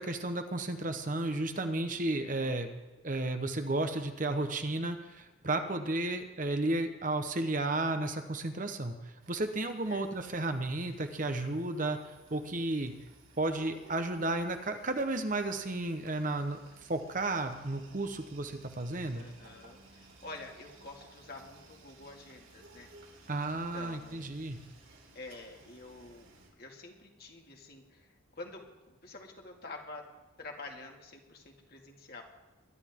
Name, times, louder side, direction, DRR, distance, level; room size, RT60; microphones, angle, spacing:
voice 1, 0.0-2.7 3.0-12.0 12.3-12.9 13.4-19.3 23.3-24.6, right 2 dB, 40° right, 7 dB, 1.0 m, -33 dB
voice 2, 2.3-2.6 9.9-10.1 19.2-22.9 23.7-24.3 25.1-26.3 26.6-28.1 28.4-30.0 30.4-32.2, left 2 dB, 50° left, 1 dB, 2.2 m, -48 dB
sound 1, 9.2-26.5, right 2 dB, 75° right, 3.6 m, -57 dB
22.0 x 11.5 x 3.7 m, 1.1 s
head